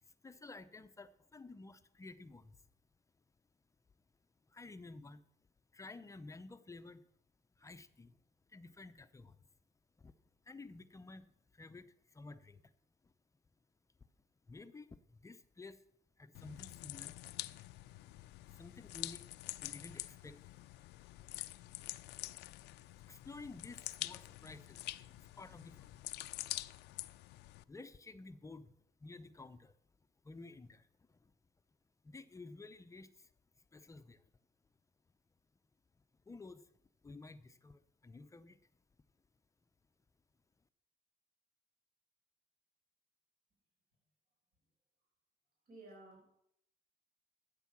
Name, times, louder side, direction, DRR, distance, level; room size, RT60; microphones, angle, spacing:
voice 1, 0.0-2.7 4.5-5.3 5.7-7.1 7.6-8.2 8.5-9.5 10.0-10.1 10.4-12.7 13.0-13.1 14.5-15.8 16.2-17.2 18.5-19.3 19.6-20.5 22.1-22.2 22.9-26.3 27.7-29.8 30.2-31.3 32.0-33.3 33.6-34.3 35.9-36.7 37.0-38.6, left 3 dB, 20° left, 10 dB, 0.6 m, -53 dB
sound 1, 16.3-27.6, left 17 dB, 85° left, 0.5 m, -46 dB
voice 2, 45.7-46.4, right 2 dB, 60° right, -2 dB, 6.1 m, -55 dB
12.5 x 8.2 x 6.1 m, 0.73 s
cardioid pair, 110°, 17 cm